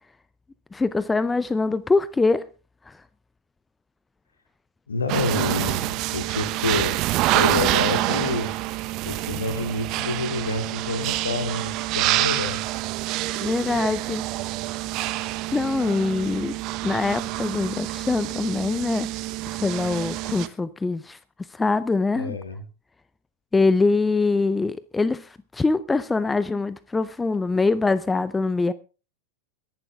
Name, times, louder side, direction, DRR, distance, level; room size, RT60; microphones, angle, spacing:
voice 1, 0.7-2.4 2.9-3.0 13.4-14.2 15.5-16.5 16.8-19.2 19.5-21.2 21.5-22.4 23.5-28.7, left 3 dB, 10° left, 0.6 m, -23 dB
voice 2, 4.9-7.0 7.3-8.5 9.0-12.6 22.1-22.6, left 3 dB, 75° left, 2.8 m, -28 dB
sound 1, 5.1-20.5, right 17 dB, 40° right, 1.1 m, -27 dB
22.5 x 11.0 x 3.6 m
figure-of-eight pair, 90°, 0 cm